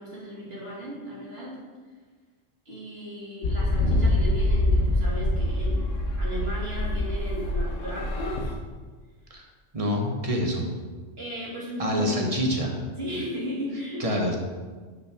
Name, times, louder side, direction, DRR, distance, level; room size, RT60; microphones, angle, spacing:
voice 1, 0.0-1.6 2.7-5.9 6.2-8.5 11.2-12.7 13.0-14.1, equal, 50° right, -6 dB, 2.7 m, -35 dB
sound 1, 3.4-8.5, left 1 dB, 75° left, 1.4 m, -25 dB
voice 2, 9.7-10.6 11.8-12.8 14.0-14.4, equal, 30° right, 0 dB, 1.3 m, -26 dB
11.0 x 5.6 x 3.6 m, 1.4 s
omnidirectional pair, 1.3 m